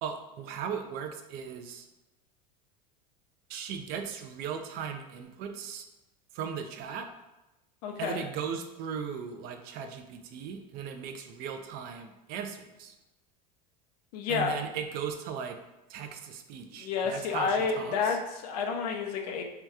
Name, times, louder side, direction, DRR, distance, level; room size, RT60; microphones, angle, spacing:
voice 1, 0.0-1.8 3.5-5.9 6.3-7.1 8.0-12.9 14.3-15.6 15.9-18.2, right 7 dB, 50° right, 6 dB, 0.4 m, -37 dB
voice 2, 7.8-8.2 14.1-14.7 16.7-19.4, left 5 dB, 75° left, 3 dB, 0.6 m, -30 dB
2.8 x 2.3 x 3.4 m, 1.0 s
supercardioid pair, 110°, 20 cm